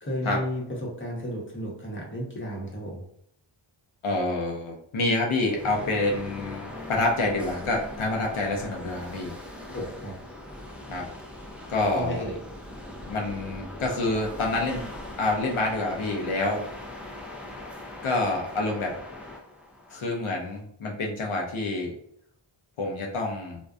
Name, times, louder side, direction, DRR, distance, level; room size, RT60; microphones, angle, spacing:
voice 1, 0.0-3.0 9.7-10.1 11.9-12.4, equal, 25° left, -3 dB, 0.9 m, -33 dB
voice 2, 4.0-9.3 10.9-11.1 11.7-12.2 13.0-14.8 15.2-16.6 18.0-18.9 19.9-21.9 22.8-23.6, left 2 dB, 90° left, 0 dB, 0.6 m, -27 dB
sound 1, 5.5-20.6, left 1 dB, 5° right, 0.4 m, -41 dB
2.5 x 2.1 x 2.3 m, 0.71 s
wide cardioid pair, 45°, 48 cm